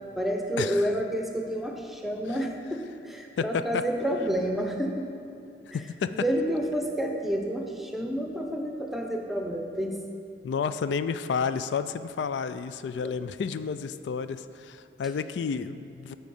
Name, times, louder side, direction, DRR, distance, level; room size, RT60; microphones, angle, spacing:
voice 1, 0.2-5.1 6.1-10.0 13.0-13.1, equal, ahead, 2 dB, 0.7 m, -29 dB
voice 2, 3.4-3.9 5.7-6.2 10.4-16.2, left 6 dB, 85° left, 12 dB, 0.3 m, -31 dB
13.5 x 4.6 x 5.4 m, 2.5 s
head